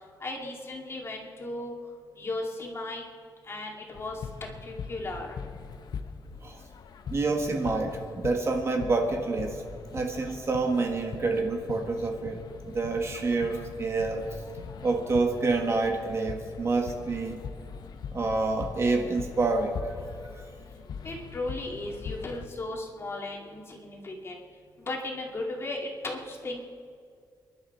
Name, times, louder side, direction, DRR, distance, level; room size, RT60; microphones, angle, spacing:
voice 1, 0.2-1.7 2.2-3.0 3.4-4.2 4.6-5.4 21.0-24.4 24.8-26.6, left 2 dB, 35° left, 0 dB, 2.2 m, -36 dB
sound 1, 3.9-22.5, left 6 dB, 65° left, 1.0 m, -41 dB
voice 2, 7.1-9.6 9.9-14.3 14.8-17.4 18.1-19.9, right 3 dB, 35° right, 3 dB, 1.5 m, -28 dB
29.5 x 11.0 x 4.4 m, 2.2 s
wide cardioid pair, 145°, 8 cm